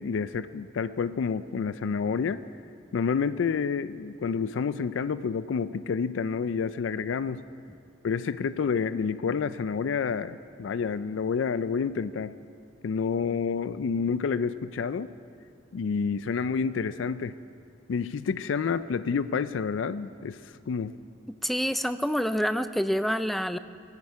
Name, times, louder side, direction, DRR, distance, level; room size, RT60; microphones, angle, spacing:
voice 1, 0.0-2.4 2.9-7.4 8.0-12.4 12.8-15.1 15.7-17.4 17.9-20.9, left 5 dB, 75° left, 14 dB, 0.4 m, -29 dB
voice 2, 21.3-23.6, equal, ahead, 11 dB, 0.4 m, -27 dB
21.0 x 9.8 x 4.7 m, 2.4 s
head